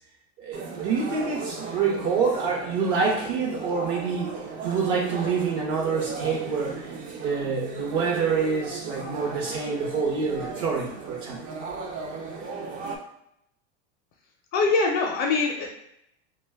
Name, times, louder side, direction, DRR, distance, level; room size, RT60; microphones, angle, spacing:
voice 1, 0.4-4.3 4.6-6.9 7.2-11.4, right 5 dB, 55° right, -1 dB, 0.7 m, -26 dB
sound 1, 0.5-13.0, right 4 dB, 25° right, 0.4 m, -36 dB
voice 2, 14.5-15.8, left 3 dB, 40° left, 0 dB, 0.5 m, -23 dB
2.8 x 2.2 x 3.3 m, 0.78 s
supercardioid pair, 140°, 32 cm